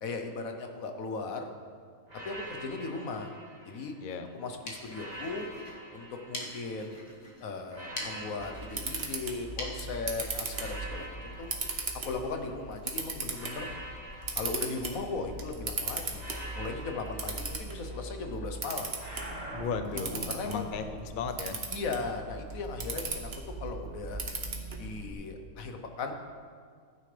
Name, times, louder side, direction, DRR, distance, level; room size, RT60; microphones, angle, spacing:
voice 1, 0.0-1.5 2.2-3.3 3.6-3.9 4.3-5.5 5.9-7.0 7.4-11.5 12.0-13.7 14.4-16.2 16.5-18.9 20.1-20.7 21.7-23.3 23.6-24.2 24.8-26.1, left 3 dB, 90° left, 5 dB, 1.4 m, -37 dB
sound 1, 2.1-4.2 4.9-7.0 7.7-9.9 10.5-12.7 13.3-15.5 16.1-18.3 19.0-21.0, right 1 dB, 30° right, 2.3 m, -45 dB
sound 2, 4.3-11.8, left 1 dB, 30° left, 1.5 m, -45 dB
Camera, 8.4-25.1, right 3 dB, 50° right, 1.3 m, -38 dB
voice 2, 19.5-20.1 20.4-21.6, left 6 dB, 50° left, 8 dB, 0.7 m, -35 dB
15.0 x 9.8 x 3.4 m, 2.1 s
omnidirectional pair, 1.4 m